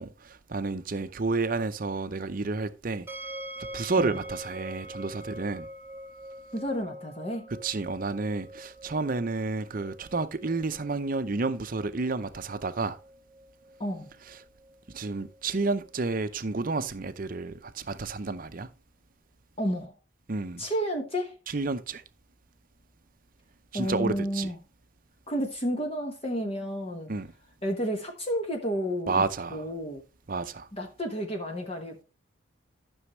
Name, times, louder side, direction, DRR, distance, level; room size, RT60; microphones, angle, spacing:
voice 1, 0.0-3.1 3.7-5.7 7.6-13.0 14.9-18.7 20.3-20.6 21.5-22.0 23.7-24.5 27.1-27.3 29.1-29.6 30.3-30.7, right 3 dB, 45° right, 0.6 m, -30 dB
sound 1, 3.1-16.0, right 1 dB, 10° right, 0.8 m, -45 dB
voice 2, 6.5-7.5 13.8-14.1 19.6-19.9 20.6-21.4 23.7-24.6 25.3-27.1 27.6-29.2 29.5-30.0 30.7-32.0, equal, 30° left, 1.2 m, -31 dB
13.0 x 6.3 x 3.1 m
head